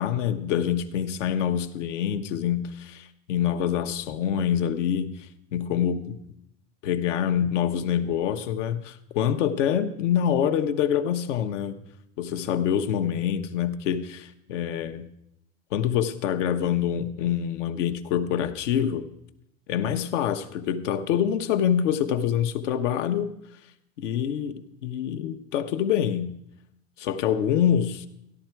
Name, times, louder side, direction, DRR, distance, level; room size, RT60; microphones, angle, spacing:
voice 1, 0.0-5.3 5.5-6.2 6.8-11.8 12.2-15.1 15.7-19.1 19.7-23.3 24.0-26.4 27.0-28.1, left 9 dB, 85° left, 9 dB, 1.0 m, -26 dB
14.0 x 11.0 x 4.5 m, 0.77 s
supercardioid pair, 125°, 36 cm